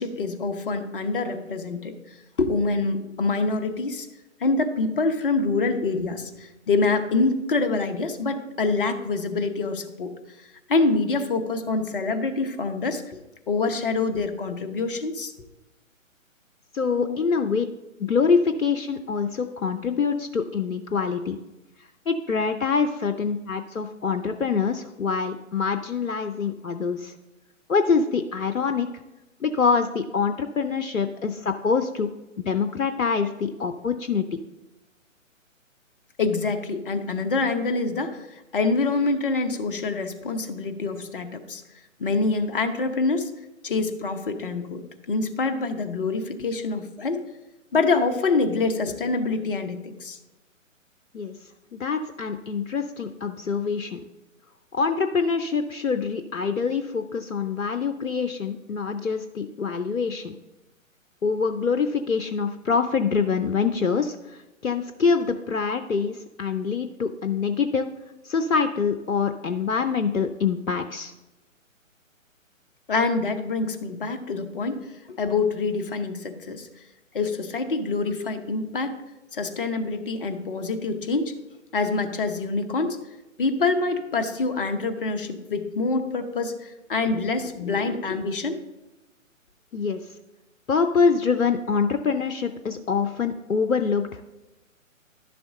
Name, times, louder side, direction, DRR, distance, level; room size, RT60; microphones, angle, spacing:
voice 1, 0.0-1.9 2.4-4.1 4.4-10.1 10.7-13.2 13.5-15.3 16.9-17.2 36.2-38.3 38.5-41.6 42.0-43.3 43.6-47.2 47.7-50.2 72.9-74.8 75.2-76.7 77.1-78.9 79.3-81.3 81.7-83.0 83.4-88.6, left 3 dB, 40° left, 7 dB, 0.9 m, -26 dB
voice 2, 16.7-17.7 18.0-21.4 21.8-27.1 27.7-28.9 29.4-32.1 32.4-34.4 51.1-51.3 51.7-54.0 54.7-60.3 61.2-67.9 68.2-71.1 89.7-90.1 90.7-94.2, left 5 dB, 80° left, 8 dB, 0.7 m, -25 dB
11.5 x 6.9 x 3.7 m, 1.0 s
figure-of-eight pair, 135°, 40 cm